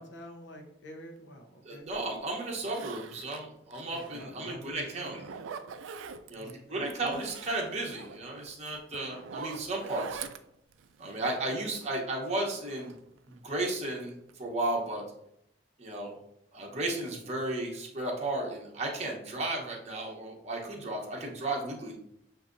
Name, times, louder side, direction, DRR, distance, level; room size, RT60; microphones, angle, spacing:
voice 1, 0.0-1.9 3.9-5.4 6.3-7.3, equal, 65° left, 2 dB, 0.8 m, -48 dB
voice 2, 1.6-5.2 6.3-10.2 11.0-12.9 13.3-15.0 15.8-16.1 16.5-22.0, right 2 dB, 35° right, -1 dB, 0.9 m, -34 dB
Zipper (clothing), 1.9-2.0 2.6-4.5 4.9-6.5 6.9-12.1 12.4-13.7 14.0-14.5 14.8-14.9, right 6 dB, 80° right, 0.3 m, -45 dB
7.1 x 2.7 x 2.5 m, 0.76 s
head